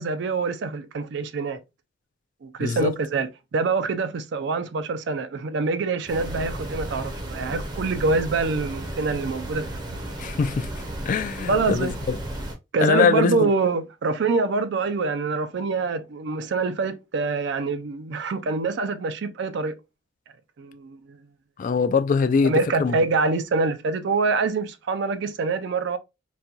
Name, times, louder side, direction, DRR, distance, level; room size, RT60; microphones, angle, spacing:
voice 1, 0.0-1.6 2.4-10.0 11.4-11.9 12.7-19.8 20.6-21.2 22.4-26.0, right 4 dB, 65° right, 0.4 m, -25 dB
voice 2, 2.6-2.9 10.2-10.7 11.1-12.2 12.8-13.5 21.6-23.0, left 5 dB, 45° left, 0.3 m, -22 dB
sound 1, 6.1-12.5, right 1 dB, 25° right, 0.6 m, -34 dB
4.1 x 2.2 x 2.3 m
head